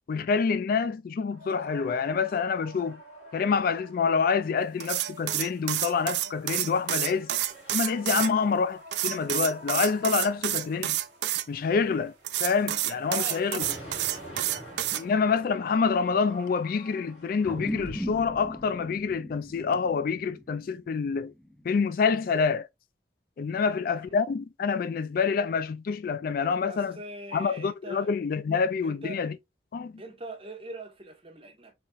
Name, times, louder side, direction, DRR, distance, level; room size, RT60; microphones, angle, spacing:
voice 1, 0.1-3.0 3.3-7.3 7.7-11.0 11.5-12.1 12.4-13.6 14.9-21.3 21.6-22.7 23.4-26.9 27.3-29.3 29.7-29.9, left 5 dB, 50° left, 0.3 m, -27 dB
sound 1, 1.3-17.9, equal, 35° left, 2.4 m, -48 dB
sound 2, 4.8-8.3 8.9-11.4 12.2-15.0, right 13 dB, 65° right, 0.4 m, -29 dB
voice 2, 13.1-13.9 14.5-15.0 23.5-24.1 26.7-28.1 28.8-29.2 30.0-31.7, right 2 dB, 30° right, 1.3 m, -43 dB
sound 3, 17.4-22.2, equal, 5° left, 0.5 m, -39 dB
4.2 x 3.9 x 2.4 m
head